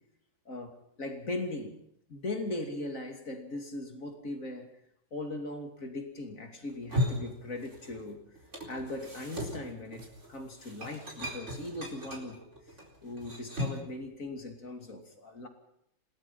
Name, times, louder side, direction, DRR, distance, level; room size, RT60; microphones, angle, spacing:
voice 1, 0.5-1.8 2.1-4.8 5.1-8.2 8.7-12.4 13.0-15.5, left 2 dB, 40° left, 4 dB, 3.1 m, -39 dB
sound 1, 6.7-8.1 8.4-13.9, left 1 dB, 35° right, 4.6 m, -37 dB
28.5 x 18.0 x 5.7 m, 0.74 s
omnidirectional pair, 2.2 m